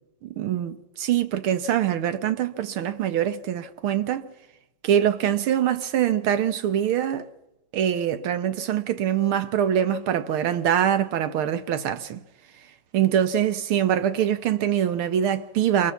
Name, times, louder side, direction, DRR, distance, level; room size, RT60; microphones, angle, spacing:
voice 1, 0.2-4.3 4.8-7.3 7.7-12.2 12.9-15.9, right 10 dB, 90° right, 2.0 m, -24 dB
27.0 x 23.5 x 7.1 m
omnidirectional pair, 2.3 m